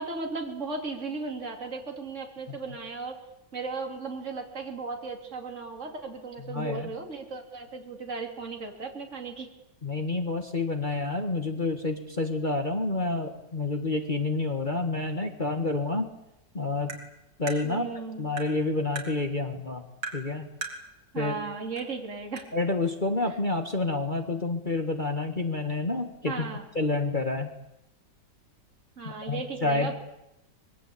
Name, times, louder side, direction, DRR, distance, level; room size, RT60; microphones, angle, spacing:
voice 1, 0.0-3.2 3.5-9.5 17.6-18.2 21.1-22.4 26.3-26.6 29.0-29.9, right 4 dB, 40° right, 3 dB, 3.2 m, -36 dB
voice 2, 6.5-6.9 9.8-16.1 16.5-17.0 17.4-17.9 18.2-19.8 20.1-20.5 21.1-21.3 22.5-26.5 26.7-27.5 29.0-29.9, left 2 dB, 30° left, 5 dB, 1.7 m, -29 dB
Tap, 16.9-17.0 17.5-17.6 18.4-18.5 19.0-19.1 20.0-20.2 20.6-20.8 21.8-21.9 22.4-22.5, right 3 dB, 75° right, 4.3 m, -36 dB
25.0 x 21.5 x 8.6 m, 0.87 s
omnidirectional pair, 1.9 m